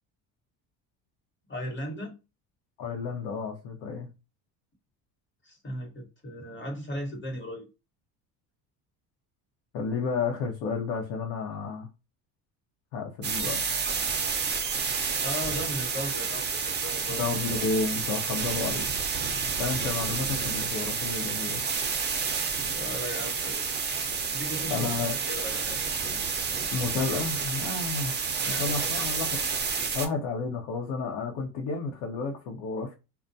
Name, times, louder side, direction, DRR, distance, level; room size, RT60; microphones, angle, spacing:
voice 1, 1.5-2.1 5.4-7.7 15.0-17.2 22.6-23.7 24.3-25.8 28.4-28.9, equal, 25° left, 1.1 m, -37 dB
voice 2, 2.8-4.1 9.7-11.9 12.9-13.6 17.1-18.9 19.6-21.6 24.7-25.1 26.7-28.1 28.5-29.4 29.9-32.9, left 4 dB, 70° left, 0.8 m, -31 dB
sound 1, 13.2-30.1, right 5 dB, 25° right, 0.5 m, -30 dB
2.2 x 2.1 x 2.6 m
supercardioid pair, 100°, 45 cm